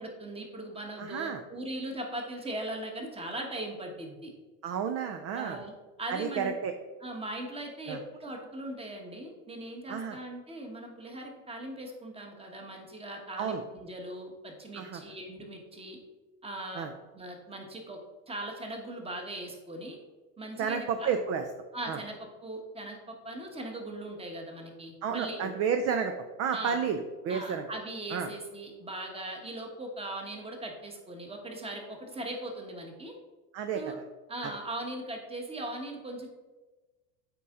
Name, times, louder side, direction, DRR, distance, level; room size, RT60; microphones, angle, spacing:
voice 1, 0.0-4.3 5.3-5.7 6.0-6.5 7.0-16.0 16.4-16.9 17.1-18.0 18.3-20.0 20.4-21.1 21.7-25.5 26.5-26.8 27.3-33.1 33.7-34.0 34.3-36.3, right 1 dB, 15° right, 2 dB, 1.2 m, -39 dB
voice 2, 1.0-1.4 4.6-5.6 6.1-6.7 7.9-8.0 9.9-10.2 13.4-13.6 14.7-15.0 16.7-16.9 20.6-21.4 21.9-22.0 25.0-26.1 26.4-27.6 28.1-28.3 33.5-33.8 34.4-34.5, right 7 dB, 35° right, 7 dB, 0.5 m, -31 dB
8.3 x 4.3 x 3.7 m, 1.2 s
supercardioid pair, 115°, 43 cm